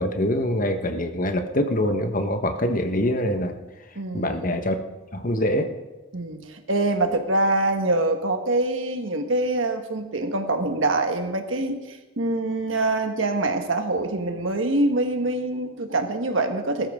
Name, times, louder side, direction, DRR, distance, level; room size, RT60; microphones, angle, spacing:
voice 1, 0.0-3.6 4.1-4.8 5.1-5.7, left 1 dB, 40° left, 6 dB, 1.2 m, -24 dB
voice 2, 3.9-4.4 6.1-16.9, right 2 dB, 70° right, 6 dB, 1.4 m, -24 dB
20.5 x 13.0 x 3.7 m, 1.2 s
head